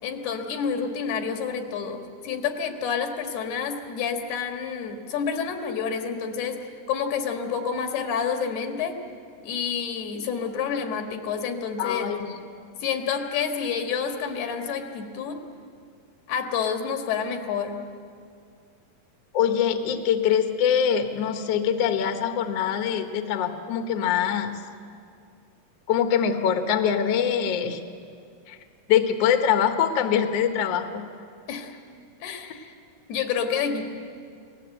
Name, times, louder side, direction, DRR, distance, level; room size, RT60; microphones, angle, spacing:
voice 1, 0.0-6.6 6.9-9.0 9.4-12.1 12.8-15.4 16.3-17.9 31.5-31.8 32.2-32.7 33.1-33.8, left 6 dB, 85° left, 4 dB, 3.8 m, -29 dB
voice 2, 11.8-12.4 19.3-24.6 25.9-27.8 28.5-28.6 28.9-31.1, left 8 dB, 60° left, 6 dB, 1.8 m, -23 dB
29.5 x 18.5 x 7.9 m, 2.3 s
omnidirectional pair, 4.5 m